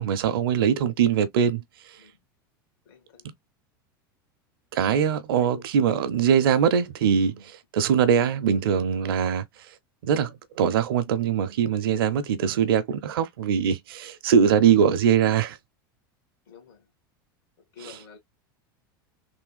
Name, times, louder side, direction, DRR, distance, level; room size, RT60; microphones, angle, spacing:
voice 1, 0.0-1.6 3.2-3.3 4.7-9.4 10.0-15.6 17.8-17.9, right 8 dB, 80° right, 0.6 m, -22 dB
voice 2, 2.8-3.2 5.4-5.6 16.5-16.9 17.7-18.2, left 7 dB, 75° left, 1.6 m, -48 dB
3.4 x 2.2 x 2.2 m
hypercardioid pair, 105°, 12 cm